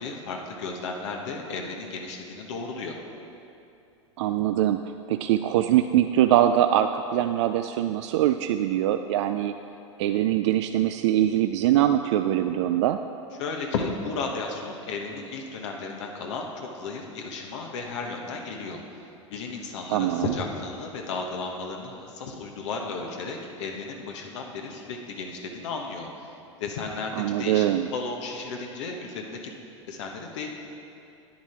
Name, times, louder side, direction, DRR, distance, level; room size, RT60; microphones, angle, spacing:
voice 1, 0.0-3.0 13.4-18.8 19.3-26.3 26.6-29.5 29.9-30.5, left 4 dB, 65° left, 1 dB, 1.1 m, -34 dB
voice 2, 4.2-9.5 10.0-13.0 19.9-20.3 27.1-27.9, right 12 dB, 65° right, 8 dB, 0.4 m, -23 dB
10.5 x 8.9 x 4.4 m, 2.7 s
hypercardioid pair, 95°, 16 cm